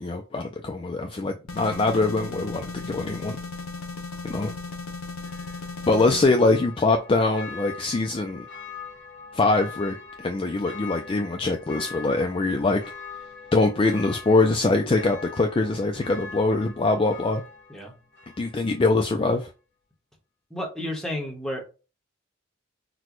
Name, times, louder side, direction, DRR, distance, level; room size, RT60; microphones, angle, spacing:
voice 1, 0.0-3.4 4.2-4.5 5.9-8.5 9.3-12.8 13.5-17.4 18.4-19.5, left 3 dB, 25° left, 0.3 m, -23 dB
sound 1, 1.5-6.3, left 3 dB, 80° left, 0.6 m, -36 dB
Church bell, 5.2-18.9 19.3-19.4, left 5 dB, 55° left, 1.4 m, -43 dB
voice 2, 20.5-21.6, left 1 dB, ahead, 1.0 m, -31 dB
6.0 x 2.2 x 3.0 m
head